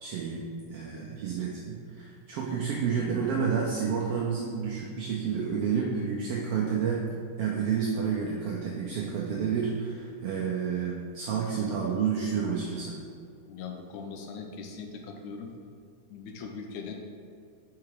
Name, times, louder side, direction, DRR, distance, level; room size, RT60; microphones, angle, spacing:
voice 1, 0.0-7.1 7.4-13.0, right 6 dB, 80° right, -3 dB, 1.3 m, -30 dB
voice 2, 13.5-15.5 16.1-16.9, left 5 dB, 85° left, 3 dB, 2.1 m, -40 dB
5.7 x 4.8 x 4.7 m, 2.4 s
omnidirectional pair, 3.4 m